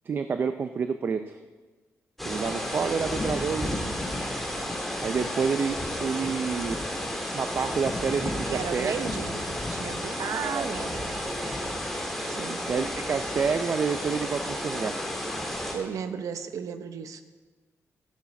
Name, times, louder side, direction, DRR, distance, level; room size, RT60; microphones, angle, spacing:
voice 1, 0.1-1.4 2.2-3.9 5.0-6.9 7.3-8.3 8.7-8.9 10.4-10.7 11.0-11.7 12.7-15.0, right 5 dB, 40° right, 9 dB, 0.5 m, -29 dB
sound 1, 2.2-15.7, left 1 dB, 5° left, 2.2 m, -32 dB
voice 2, 8.3-11.1 12.2-12.6 15.7-17.2, right 7 dB, 80° right, 9 dB, 0.9 m, -34 dB
15.0 x 9.0 x 5.9 m, 1.3 s
wide cardioid pair, 180°, 6 cm